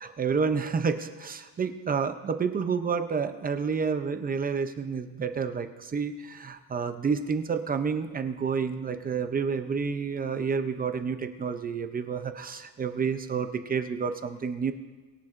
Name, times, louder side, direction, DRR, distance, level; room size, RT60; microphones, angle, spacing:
voice 1, 0.0-14.7, right 5 dB, 25° right, 8 dB, 0.5 m, -29 dB
22.0 x 11.0 x 2.5 m, 1.4 s
cardioid pair, 175°, 40 cm